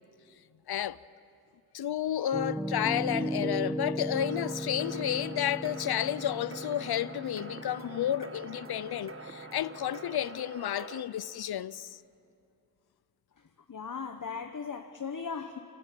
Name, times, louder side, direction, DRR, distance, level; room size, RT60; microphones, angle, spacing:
voice 1, 1.7-12.0, left 11 dB, 80° left, 0.5 m, -31 dB
Piano, 2.3-10.2, right 1 dB, 5° right, 0.8 m, -37 dB
sound 1, 4.2-11.0, right 3 dB, 35° right, 1.4 m, -46 dB
voice 2, 13.7-15.6, left 5 dB, 55° left, 1.1 m, -37 dB
29.5 x 14.5 x 9.2 m
wide cardioid pair, 65°, 38 cm